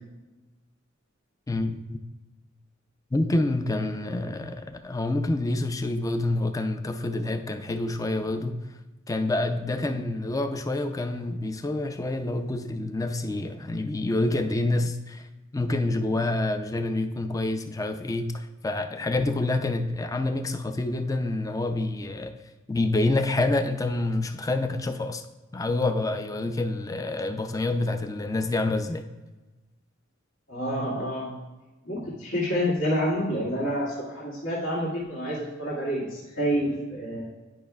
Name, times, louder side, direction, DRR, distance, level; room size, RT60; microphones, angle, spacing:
voice 1, 1.5-2.0 3.1-8.6 9.1-15.3 15.5-22.4 22.7-25.2 25.5-29.1, left 2 dB, 15° left, 0.4 m, -27 dB
voice 2, 30.5-31.3 31.8-37.3, equal, 75° left, 2.1 m, -28 dB
10.5 x 5.5 x 2.3 m
head